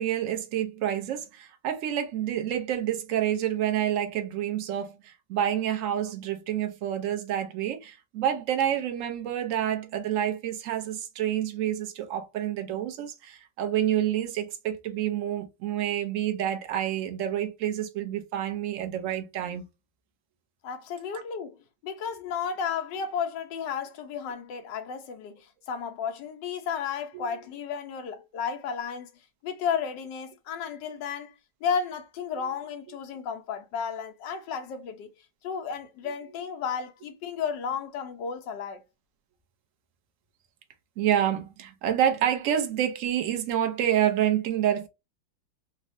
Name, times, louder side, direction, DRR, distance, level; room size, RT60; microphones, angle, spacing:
voice 1, 0.0-19.6 21.1-21.2 27.1-27.3 32.4-32.5 41.0-44.9, right 10 dB, 75° right, 0.7 m, -28 dB
voice 2, 20.6-29.1 29.4-31.3 31.6-35.1 35.4-38.8, left 6 dB, 70° left, 1.3 m, -33 dB
3.7 x 2.1 x 2.5 m
omnidirectional pair, 2.1 m